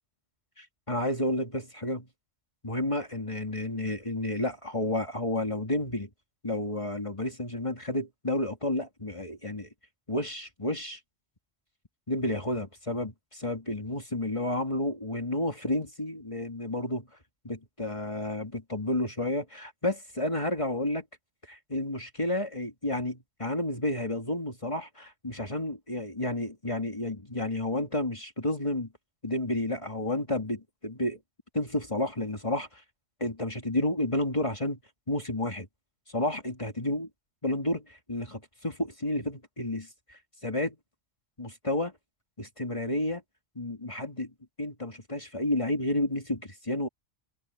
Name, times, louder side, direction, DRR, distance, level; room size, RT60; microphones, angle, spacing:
voice 1, 0.6-2.1 2.6-6.1 6.4-9.7 10.1-11.0 12.1-17.1 17.4-21.0 21.5-28.9 29.2-31.2 31.5-32.8 33.2-34.8 35.1-35.7 36.1-37.1 37.4-40.8 41.4-41.9 42.4-43.2 43.6-44.3 44.6-46.9, left 1 dB, 25° left, 2.5 m, -31 dB
omnidirectional pair, 1.2 m